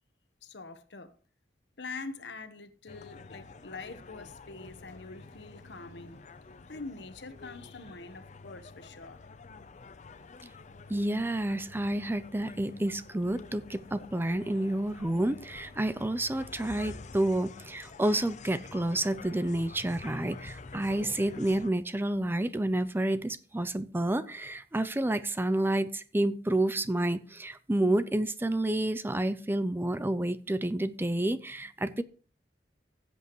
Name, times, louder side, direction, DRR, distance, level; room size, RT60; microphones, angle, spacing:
voice 1, 0.4-1.1 1.8-9.2, left 3 dB, 80° left, 1.1 m, -44 dB
sound 1, 2.9-21.7, left 3 dB, 45° left, 0.5 m, -48 dB
voice 2, 10.9-32.0, right 1 dB, 15° right, 0.5 m, -29 dB
16.0 x 8.0 x 3.1 m
head